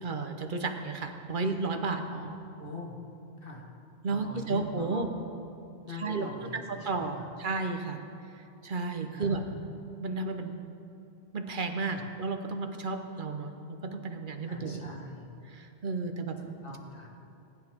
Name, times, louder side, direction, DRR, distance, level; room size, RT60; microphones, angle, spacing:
voice 1, 0.0-2.0 4.0-5.1 5.9-6.3 6.5-8.0 8.6-9.4 10.0-10.6 11.3-15.0 15.5-16.4, right 4 dB, 55° right, 5 dB, 1.1 m, -33 dB
voice 2, 2.6-3.0 3.4-3.7 4.1-5.1 5.8-7.3 9.1-9.6 11.9-12.1 14.5-15.3 16.4-17.1, left 3 dB, 60° left, 0 dB, 1.8 m, -42 dB
21.0 x 10.0 x 3.6 m, 2.7 s
omnidirectional pair, 1.1 m